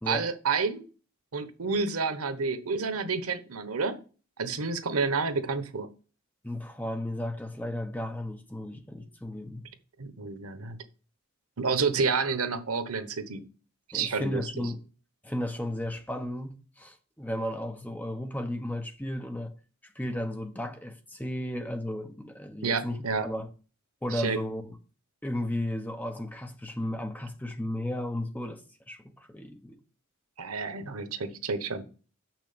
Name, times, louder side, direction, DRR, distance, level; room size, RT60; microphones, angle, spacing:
voice 1, 0.1-0.8 1.3-4.0 4.4-5.9 10.0-10.8 11.6-13.5 13.9-14.7 22.6-23.3 24.1-24.4 30.4-31.8, right 4 dB, 90° right, 1.1 m, -29 dB
voice 2, 6.4-9.7 13.9-14.8 15.2-19.5 19.9-23.5 24.0-24.8 25.2-28.6 28.9-29.8, left 1 dB, 10° left, 0.9 m, -34 dB
6.6 x 6.1 x 6.8 m
head